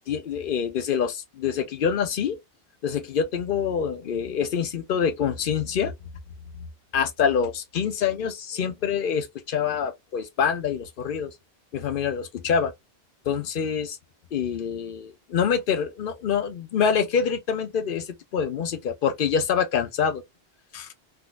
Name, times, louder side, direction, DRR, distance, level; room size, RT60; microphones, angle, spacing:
voice 1, 0.1-2.4 2.8-5.9 6.9-11.3 11.7-12.7 13.3-14.0 14.3-18.1 18.3-20.2 20.7-20.9, left 7 dB, 60° left, 0.8 m, -26 dB
3.7 x 2.5 x 2.3 m
omnidirectional pair, 1.0 m